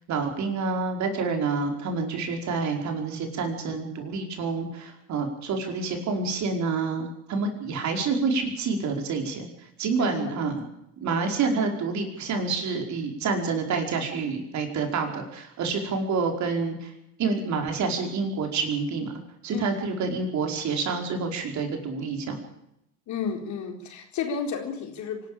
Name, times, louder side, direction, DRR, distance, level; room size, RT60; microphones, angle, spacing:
voice 1, 0.1-9.5 9.8-10.6 11.0-16.9 17.2-19.1 19.4-22.4, right 4 dB, 45° right, 3 dB, 5.1 m, -28 dB
voice 2, 10.0-10.5 19.5-19.7 23.1-25.3, left 6 dB, 50° left, 4 dB, 4.2 m, -32 dB
24.5 x 12.5 x 8.9 m, 0.81 s
hypercardioid pair, 80°, 38 cm